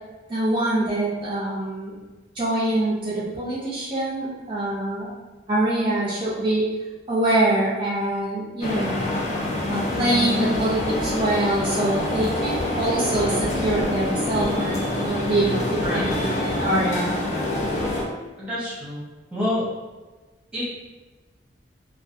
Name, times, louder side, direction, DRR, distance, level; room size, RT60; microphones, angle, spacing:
voice 1, 0.3-2.0 2.3-5.1 5.5-6.7 7.1-8.9 9.7-13.3 13.6-17.1, right 1 dB, 30° right, -9 dB, 0.4 m, -24 dB
sound 1, 8.6-18.0, left 1 dB, 40° left, 0.4 m, -26 dB
voice 2, 18.4-19.0 19.3-19.7 20.5-20.7, left 1 dB, 5° right, -8 dB, 0.9 m, -27 dB
2.4 x 2.3 x 2.4 m, 1.2 s
head